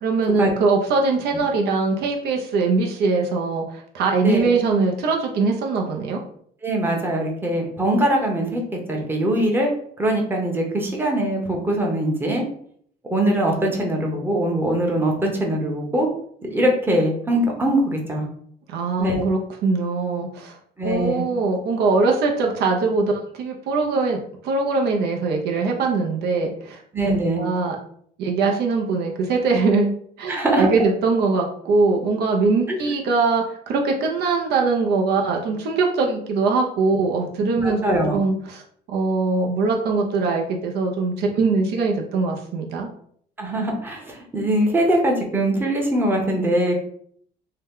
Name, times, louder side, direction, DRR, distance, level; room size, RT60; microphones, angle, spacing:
voice 1, 0.0-6.2 18.7-20.6 20.8-27.8 28.2-37.8 38.1-38.6 38.9-42.9, right 4 dB, 75° right, 1 dB, 0.6 m, -22 dB
voice 2, 6.6-8.6 8.9-9.7 10.0-12.4 13.1-16.1 16.4-18.3 19.0-19.2 20.8-21.2 26.9-27.4 30.3-30.7 37.6-38.2 43.4-46.7, right 1 dB, 10° right, 0 dB, 0.7 m, -22 dB
2.8 x 2.2 x 3.6 m, 0.63 s
cardioid pair, 110°, 17 cm